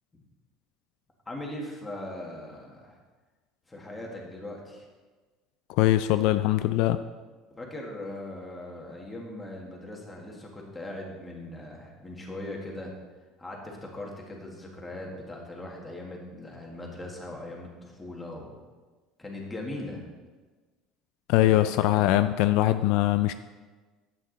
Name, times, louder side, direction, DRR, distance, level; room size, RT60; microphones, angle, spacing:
voice 1, 1.3-3.0 3.7-4.9 7.5-12.9 13.4-18.5 19.2-20.0 21.5-21.9, left 1 dB, 10° left, -1 dB, 1.8 m, -40 dB
voice 2, 5.8-7.0 21.3-23.3, left 14 dB, 70° left, 11 dB, 0.3 m, -22 dB
11.0 x 8.5 x 4.0 m, 1.3 s
cardioid pair, 160°, 0 cm